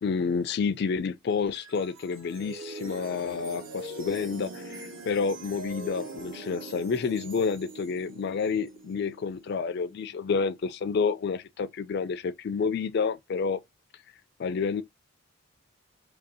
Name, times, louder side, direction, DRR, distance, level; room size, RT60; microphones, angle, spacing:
voice 1, 0.0-13.6 14.4-14.8, left 5 dB, 50° left, 0.3 m, -29 dB
sound 1, 1.3-10.6, right 2 dB, 70° right, 1.1 m, -43 dB
2.9 x 2.7 x 4.0 m
head